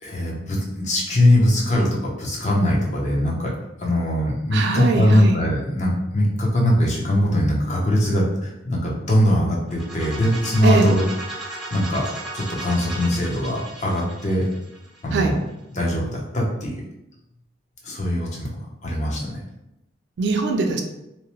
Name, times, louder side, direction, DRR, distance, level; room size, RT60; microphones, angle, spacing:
voice 1, 0.0-3.5 3.8-11.0 11.3-12.1 12.3-14.4 15.0-15.4 15.8-16.8 17.8-18.5 18.8-19.4, left 1 dB, 40° left, -2 dB, 0.6 m, -21 dB
voice 2, 4.5-5.4 10.6-10.9 15.1-15.4 20.2-20.8, right 4 dB, 60° right, 4 dB, 0.4 m, -21 dB
sound 1, 9.7-15.5, right 2 dB, ahead, 0.6 m, -36 dB
2.8 x 2.0 x 2.9 m, 0.88 s
head